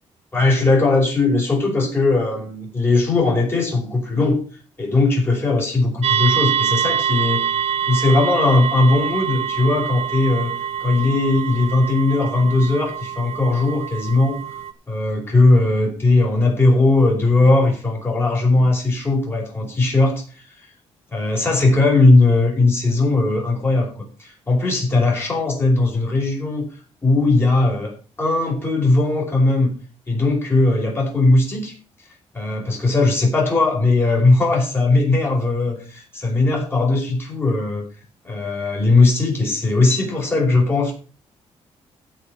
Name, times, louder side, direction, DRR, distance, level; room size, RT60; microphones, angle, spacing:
voice 1, 0.3-4.4 4.8-7.4 7.9-10.5 10.8-14.4 14.9-20.2 21.1-23.9 24.2-26.6 27.0-27.9 28.2-29.7 30.1-31.7 32.3-37.9 38.2-40.9, left 2 dB, 20° left, -1 dB, 5.1 m, -18 dB
sound 1, 6.0-14.7, right 9 dB, 65° right, 1.2 m, -25 dB
15.0 x 5.2 x 6.5 m, 0.37 s
cardioid pair, 150°, 12 cm